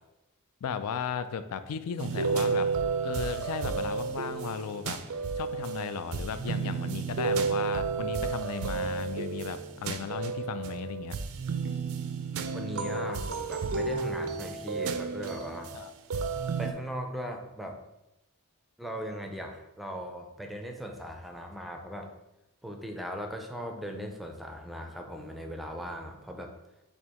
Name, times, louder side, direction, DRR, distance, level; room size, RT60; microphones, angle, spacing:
voice 1, 0.6-2.7 3.0-5.0 5.4-11.2 15.7-15.9, left 6 dB, 75° left, 11 dB, 0.4 m, -35 dB
sound 1, 2.0-16.7, right 5 dB, 65° right, 0.4 m, -32 dB
voice 2, 12.5-15.7 16.6-17.8 18.8-22.1 22.6-26.5, equal, ahead, 2 dB, 0.5 m, -38 dB
4.4 x 2.8 x 4.3 m, 0.92 s
head